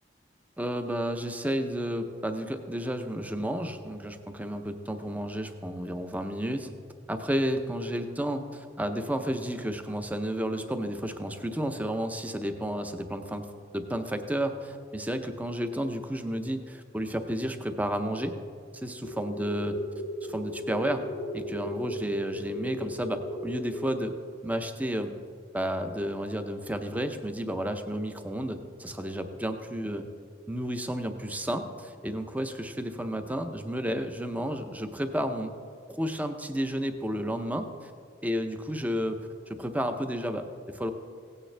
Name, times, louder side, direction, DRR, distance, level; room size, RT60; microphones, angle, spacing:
voice 1, 0.6-6.7 7.1-13.5 13.7-18.4 18.7-19.8 20.2-21.0 21.3-24.1 24.4-25.1 25.5-30.1 30.5-35.5 35.9-37.9 38.2-39.2 39.5-40.9, equal, 10° right, 7 dB, 0.6 m, -32 dB
sound 1, 19.0-24.0, left 1 dB, 85° left, 1.0 m, -37 dB
17.0 x 9.0 x 3.3 m, 2.1 s
head